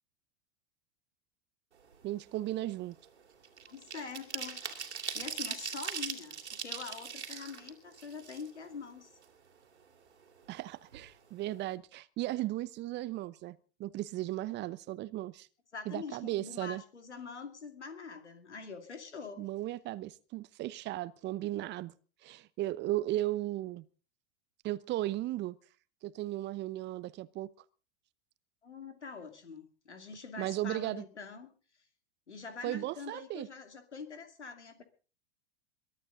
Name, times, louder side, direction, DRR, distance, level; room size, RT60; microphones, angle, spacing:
sound 1, 1.8-2.1 2.4-8.9 9.2-9.3 9.6-10.6 10.9-11.1 11.4-11.7, right 7 dB, 80° right, 2.8 m, -41 dB
voice 1, 2.0-3.0 10.5-15.5 15.9-16.8 19.4-21.9 22.2-23.8 24.6-25.6 26.0-27.5 30.4-31.0 32.6-33.5, right 15 dB, 30° right, 0.8 m, -36 dB
voice 2, 3.7-9.1 15.7-19.5 28.6-31.5 32.3-34.8, left 5 dB, 85° left, 2.6 m, -45 dB
22.5 x 12.0 x 3.9 m
figure-of-eight pair, 90°, 34 cm